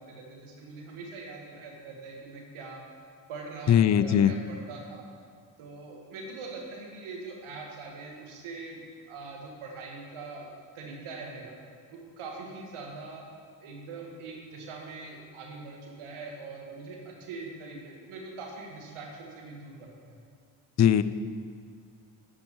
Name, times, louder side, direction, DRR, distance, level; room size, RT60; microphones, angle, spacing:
voice 1, 0.0-2.8 3.3-5.1 5.6-8.8 9.1-11.6 11.9-13.3 13.6-20.2, right 3 dB, 80° right, 0 dB, 1.7 m, -42 dB
voice 2, 3.7-4.3 20.8-21.0, left 9 dB, 35° left, 14 dB, 0.5 m, -20 dB
10.5 x 6.4 x 4.6 m, 2.1 s
supercardioid pair, 45°, 49 cm